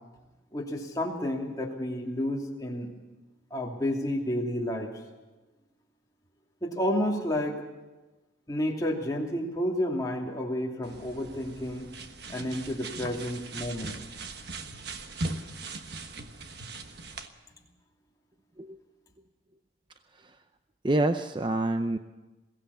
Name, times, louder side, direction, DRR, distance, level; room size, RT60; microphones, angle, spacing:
voice 1, 0.5-2.9 3.5-5.0 6.6-7.6 8.5-11.9 12.3-14.0, left 1 dB, 20° left, -1 dB, 2.7 m, -30 dB
sound 1, 10.8-17.3, right 2 dB, 55° right, 1.3 m, -39 dB
voice 2, 20.8-22.0, right 2 dB, 25° right, 8 dB, 0.6 m, -27 dB
22.0 x 17.0 x 7.0 m, 1.1 s
head